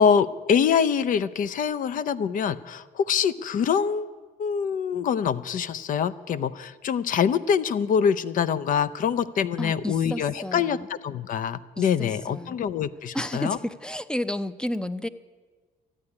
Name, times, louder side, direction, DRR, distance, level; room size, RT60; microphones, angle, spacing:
voice 1, 0.0-4.1 4.4-13.6, left 7 dB, 50° left, 17 dB, 0.6 m, -24 dB
voice 2, 9.6-10.9 11.8-12.6 13.1-15.1, left 1 dB, 5° left, 14 dB, 0.5 m, -31 dB
13.5 x 9.6 x 9.9 m, 1.4 s
cardioid pair, 110°, 17 cm